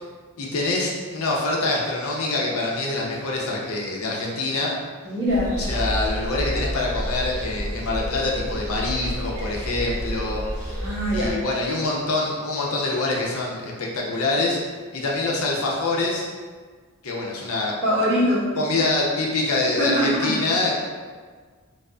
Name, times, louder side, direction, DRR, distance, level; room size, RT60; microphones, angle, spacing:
voice 1, 0.4-4.7 5.6-10.8 11.1-14.6 14.9-16.3 17.0-17.8 18.6-20.7, left 2 dB, 70° left, -2 dB, 0.6 m, -25 dB
voice 2, 5.0-5.5 10.8-11.4 17.8-18.5 19.8-20.3, equal, 50° right, -10 dB, 1.2 m, -22 dB
sound 1, 5.3-11.3, equal, 30° right, 0.7 m, -30 dB
4.8 x 2.0 x 2.3 m, 1.5 s
head